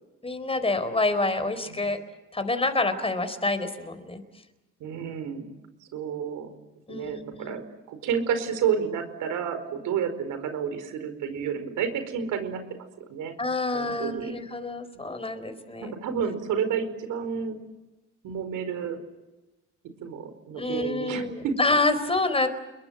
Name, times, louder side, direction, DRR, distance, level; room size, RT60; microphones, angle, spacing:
voice 1, 0.2-2.0 2.3-4.2 6.9-7.6 13.4-15.9 20.5-22.5, left 2 dB, 20° left, 10 dB, 4.2 m, -27 dB
voice 2, 4.8-5.5 5.9-6.5 6.9-7.6 7.9-12.6 13.0-13.3 13.7-14.3 15.8-17.6 18.2-19.0 20.0-21.6, right 7 dB, 85° right, 9 dB, 4.7 m, -30 dB
29.0 x 22.5 x 7.7 m, 1.1 s
cardioid pair, 90°, 30 cm